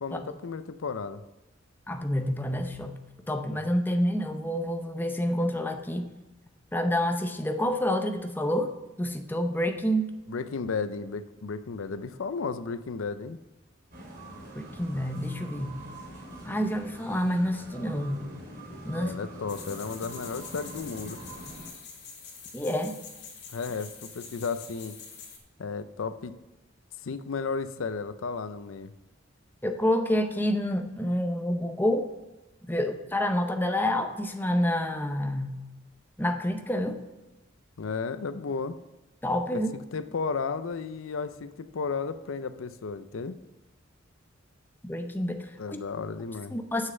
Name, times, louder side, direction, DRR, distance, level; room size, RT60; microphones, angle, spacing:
voice 1, 0.0-1.2 3.5-3.7 10.3-13.4 19.0-21.2 23.5-25.0 25.6-26.4 27.0-28.9 37.8-38.8 39.5-43.3 45.6-46.6, left 5 dB, 90° left, 12 dB, 0.5 m, -34 dB
voice 2, 1.9-3.0 3.3-6.0 6.7-10.1 14.5-15.7 16.4-18.3 18.9-19.1 22.5-23.0 29.6-32.1 32.7-35.6 36.2-37.0 39.2-39.7 44.8-45.8 46.5-46.9, equal, 10° left, 6 dB, 0.7 m, -28 dB
sound 1, 13.9-21.7, right 1 dB, 45° right, 3.3 m, -44 dB
sound 2, 19.5-25.4, left 5 dB, 60° left, 2.4 m, -45 dB
7.5 x 6.5 x 6.8 m, 1.0 s
head